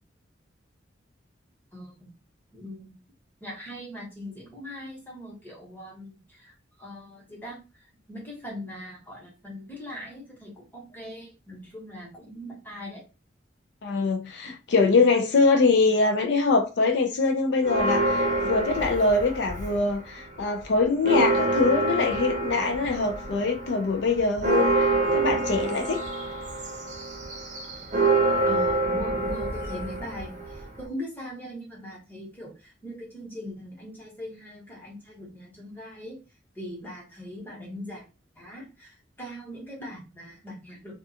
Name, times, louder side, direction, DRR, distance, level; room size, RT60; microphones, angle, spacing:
voice 1, 1.7-2.1 2.5-3.0 3.4-13.0 28.4-36.2 36.5-38.0 38.3-40.9, left 1 dB, 10° left, 0.9 m, -40 dB
voice 2, 13.8-26.0, left 3 dB, 65° left, 0.4 m, -23 dB
Church bell, 17.6-20.0 20.4-20.5 20.8-30.9, right 2 dB, 40° right, 0.6 m, -27 dB
2.3 x 2.3 x 2.7 m
head